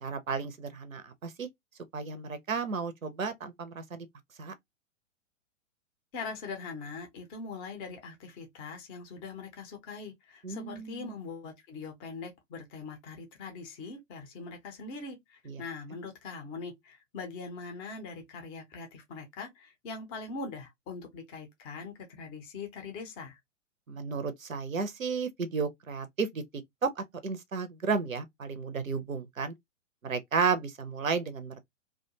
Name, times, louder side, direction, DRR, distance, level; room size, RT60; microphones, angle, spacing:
voice 1, 0.0-1.5 1.9-4.1 4.4-4.5 10.4-11.1 15.5-15.6 23.9-26.4 26.8-29.5 30.0-31.6, right 5 dB, 85° right, 0.6 m, -33 dB
voice 2, 6.1-23.4, left 4 dB, 15° left, 0.4 m, -42 dB
2.3 x 2.2 x 2.7 m
figure-of-eight pair, 110°, 39 cm